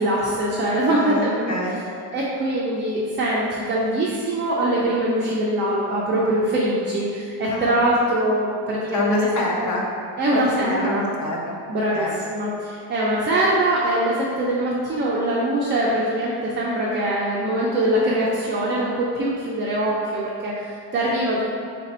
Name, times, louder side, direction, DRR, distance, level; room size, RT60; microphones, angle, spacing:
voice 1, 0.0-1.5 2.1-9.3 9.6-9.7 10.2-11.1 11.7-21.6, right 1 dB, 25° right, -6 dB, 0.4 m, -23 dB
voice 2, 0.9-1.8 7.4-7.8 8.9-9.8 10.3-11.6 11.9-12.3, left 2 dB, 35° left, -3 dB, 0.8 m, -26 dB
3.4 x 2.5 x 4.1 m, 2.3 s
cardioid pair, 105°, 50 cm